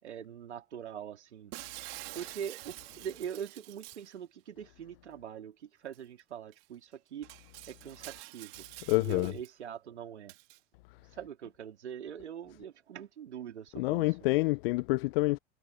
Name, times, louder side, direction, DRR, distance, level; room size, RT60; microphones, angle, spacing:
voice 1, 0.0-1.5 2.1-7.3 7.7-8.6 9.0-10.3 11.1-14.2, right 9 dB, 80° right, 3.1 m, -43 dB
Shatter, 1.5-4.1 5.9-6.0 6.5-6.6 7.2-9.5 10.3-10.6, right 23 dB, 60° right, 2.9 m, -47 dB
voice 2, 8.9-9.3 13.8-15.4, left 22 dB, 55° left, 0.7 m, -27 dB
hypercardioid pair, 85°, 34 cm